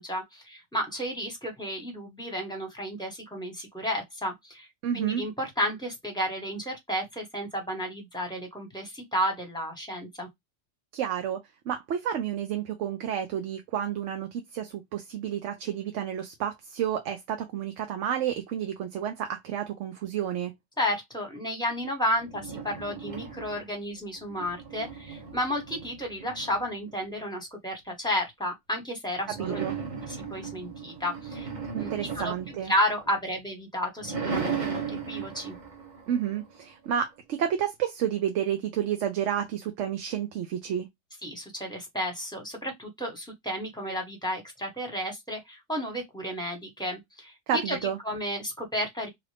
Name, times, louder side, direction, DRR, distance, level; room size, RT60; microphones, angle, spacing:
voice 1, 0.0-4.7 4.9-10.3 20.8-29.6 30.1-31.5 31.8-31.9 32.1-32.3 32.7-35.6 41.2-47.8 48.0-49.1, equal, 5° left, 1.2 m, -32 dB
voice 2, 4.8-5.2 10.9-20.5 29.4-29.8 31.7-32.7 36.1-40.9 47.5-48.0, right 9 dB, 85° right, 0.9 m, -30 dB
sound 1, 22.1-23.8 24.2-26.9 29.2-33.4 33.8-36.9, right 6 dB, 45° right, 0.8 m, -36 dB
2.9 x 2.5 x 3.2 m
omnidirectional pair, 1.2 m